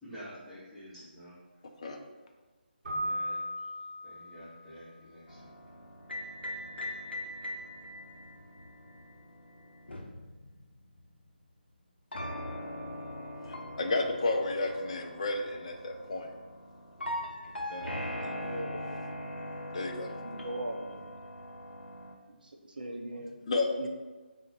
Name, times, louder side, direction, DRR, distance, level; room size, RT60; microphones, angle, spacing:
voice 1, 0.0-1.4 3.0-3.7 4.0-5.5, equal, ahead, -15 dB, 0.8 m, -49 dB
Keyboard (musical), 2.8-4.7, equal, 40° right, 1.1 m, -36 dB
sound 1, 5.3-11.2 12.1-22.1, left 1 dB, 80° left, 0.6 m, -41 dB
voice 2, 13.5-16.3 17.6-18.3 19.7-20.1 23.5-23.9, left 2 dB, 35° left, 3 dB, 0.4 m, -32 dB
voice 3, 18.4-18.9 19.8-21.1 22.3-23.4 23.8-23.9, right 1 dB, 55° right, 4 dB, 0.5 m, -40 dB
3.8 x 2.1 x 4.0 m, 1.3 s
figure-of-eight pair, 155°, 6 cm